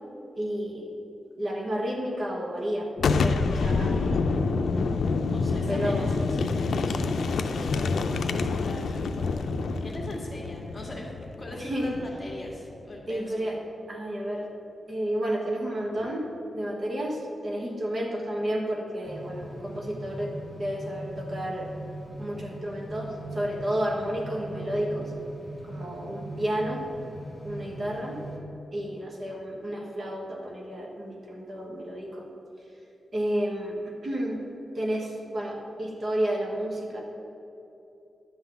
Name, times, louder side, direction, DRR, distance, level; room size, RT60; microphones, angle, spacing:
voice 1, 0.3-0.9 1.4-4.1 5.7-6.1 11.6-12.0 13.1-13.6 13.9-14.5 14.9-16.3 16.5-21.7 22.2-25.1 25.6-26.8 27.4-28.2 28.7-32.3 33.1-34.4 34.7-37.0, equal, 40° right, -1 dB, 1.3 m, -31 dB
Boom, 3.0-12.6, left 4 dB, 85° left, 0.5 m, -27 dB
voice 2, 5.3-11.1 11.4-13.5, left 1 dB, 25° left, -2 dB, 1.9 m, -41 dB
sound 1, 19.0-28.4, right 1 dB, 10° left, 2.0 m, -40 dB
11.0 x 3.9 x 7.0 m, 2.9 s
wide cardioid pair, 105°, 0 cm